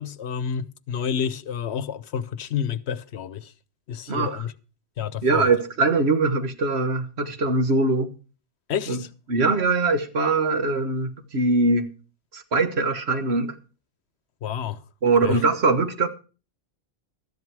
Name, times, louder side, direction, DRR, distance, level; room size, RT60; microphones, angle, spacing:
voice 1, 0.0-3.5 3.9-4.5 5.0-5.5 8.7-9.1 14.4-14.8 15.2-15.4, left 8 dB, 80° left, 1.1 m, -29 dB
voice 2, 4.1-4.4 5.2-8.1 8.9-9.0 9.3-11.9 12.3-13.5 15.0-16.1, right 3 dB, 75° right, 1.6 m, -22 dB
13.5 x 11.0 x 4.7 m
omnidirectional pair, 1.1 m